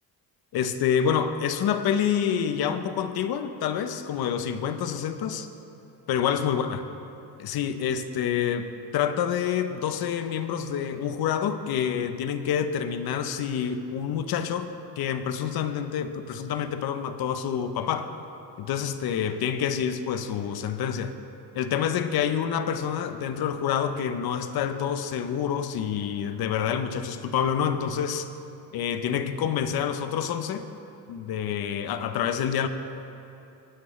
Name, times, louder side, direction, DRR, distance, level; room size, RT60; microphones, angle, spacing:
voice 1, 0.5-5.5 6.1-6.8 7.4-14.7 15.0-18.1 18.6-21.1 21.5-28.3 28.7-30.6 31.1-32.7, left 8 dB, 65° left, 10 dB, 0.7 m, -27 dB
19.0 x 9.4 x 3.2 m, 2.9 s
cardioid pair, 160°, 40 cm